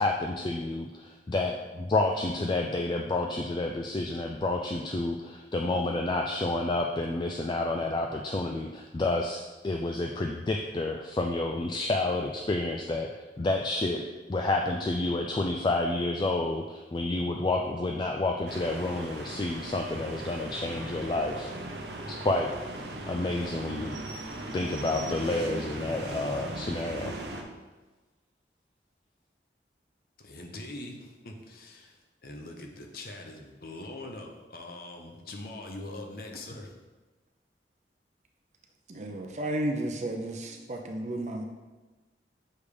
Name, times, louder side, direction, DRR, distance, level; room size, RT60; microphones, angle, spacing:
voice 1, 0.0-13.1 13.4-14.0 14.3-21.5 22.1-22.5 23.1-24.0 24.5-27.1, left 2 dB, 25° left, 2 dB, 0.3 m, -29 dB
sound 1, 18.5-27.4, right 2 dB, 75° right, 0.8 m, -38 dB
voice 2, 30.2-36.8 40.3-40.9, left 2 dB, 55° left, 2 dB, 0.8 m, -43 dB
voice 3, 38.9-41.4, right 1 dB, 40° right, 3 dB, 0.7 m, -33 dB
6.7 x 3.5 x 4.9 m, 1.2 s
head